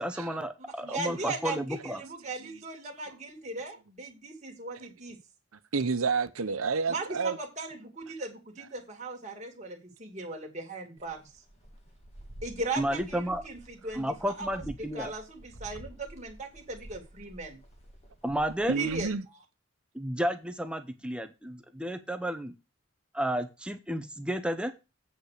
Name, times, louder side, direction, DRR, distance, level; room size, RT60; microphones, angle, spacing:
voice 1, 0.0-2.0 12.8-13.4 13.9-15.1 18.2-18.8 19.9-22.5 23.1-24.7, equal, 5° right, 0.7 m, -32 dB
voice 2, 0.8-5.2 6.9-11.4 12.4-17.6 18.7-19.4, right 3 dB, 35° right, 2.3 m, -38 dB
voice 3, 5.7-7.4 18.7-19.2, right 4 dB, 90° right, 0.9 m, -29 dB
sound 1, 11.0-19.1, right 1 dB, 30° left, 2.3 m, -50 dB
8.1 x 5.5 x 6.5 m
head